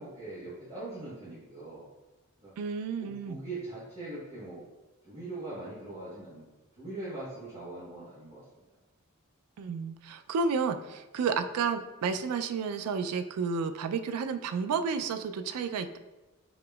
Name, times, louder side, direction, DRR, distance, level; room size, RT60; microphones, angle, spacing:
voice 1, 0.0-1.9 2.4-2.5 3.0-4.6 5.0-6.5 6.8-8.4, right 2 dB, 25° right, -12 dB, 1.2 m, -41 dB
voice 2, 2.6-3.4 9.6-16.0, right 5 dB, 80° right, 9 dB, 0.3 m, -31 dB
4.9 x 2.9 x 2.3 m, 1.1 s
head